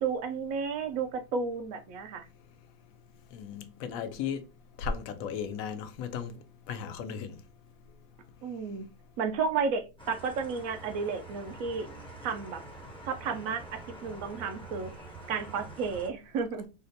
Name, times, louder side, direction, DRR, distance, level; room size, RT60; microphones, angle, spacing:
voice 1, 0.0-2.3 8.4-8.9 9.2-11.9 12.2-12.6 13.1-14.9 15.3-16.7, right 5 dB, 85° right, 1.0 m, -32 dB
voice 2, 3.3-4.4 4.8-6.4 6.7-7.4, left 6 dB, 85° left, 1.0 m, -35 dB
sound 1, 10.0-16.1, right 2 dB, 10° left, 0.3 m, -46 dB
3.9 x 2.1 x 2.6 m
omnidirectional pair, 1.4 m